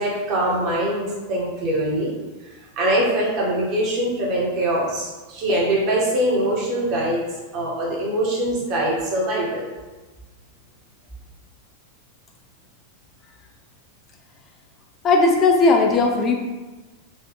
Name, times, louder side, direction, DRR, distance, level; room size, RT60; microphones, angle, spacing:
voice 1, 0.0-2.1 2.4-7.2 7.5-9.6, right 1 dB, 40° right, -4 dB, 1.3 m, -23 dB
voice 2, 15.0-16.4, left 3 dB, 30° left, 2 dB, 0.4 m, -17 dB
4.6 x 2.8 x 3.0 m, 1.2 s
figure-of-eight pair, 90°, 0 cm